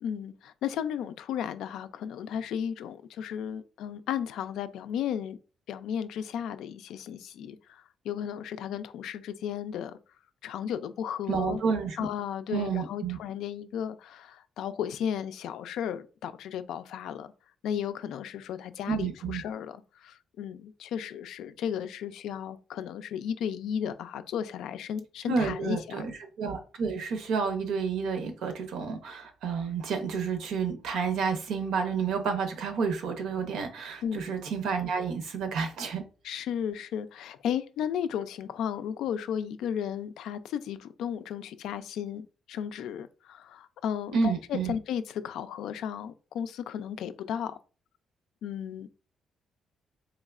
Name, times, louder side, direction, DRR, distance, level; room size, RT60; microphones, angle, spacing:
voice 1, 0.0-5.4 5.7-10.0 10.4-11.6 12.0-17.3 17.6-26.1 34.0-34.3 36.2-47.6 48.4-48.9, left 9 dB, 85° left, 0.3 m, -34 dB
voice 2, 11.3-12.1 12.5-13.2 18.9-19.4 25.3-26.1 26.4-36.0 44.1-44.7, right 5 dB, 80° right, 0.7 m, -30 dB
3.5 x 3.1 x 2.4 m
cardioid pair, 90°, 0 cm